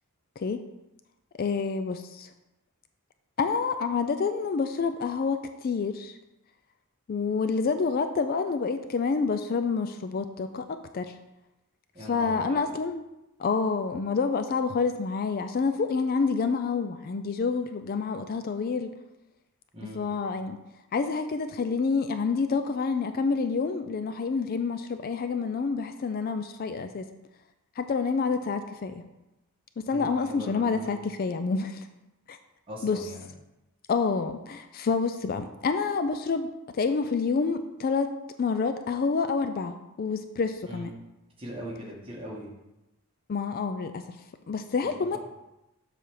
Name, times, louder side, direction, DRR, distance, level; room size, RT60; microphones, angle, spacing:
voice 1, 1.4-2.3 3.4-6.2 7.1-10.6 10.9-11.1 12.1-13.0 13.4-18.9 19.8-20.6 20.9-27.1 27.8-29.0 29.8-31.9 32.3-32.4 32.8-33.0 33.9-36.5 36.7-38.1 38.4-40.9 43.3-44.2 44.5-45.2, left 4 dB, 45° left, 9 dB, 0.3 m, -28 dB
voice 2, 11.9-12.6 19.7-20.0 29.9-30.9 32.7-33.2 40.7-40.9 41.4-42.5 44.8-45.2, equal, 25° right, -4 dB, 1.8 m, -41 dB
7.4 x 3.4 x 6.3 m, 0.94 s
head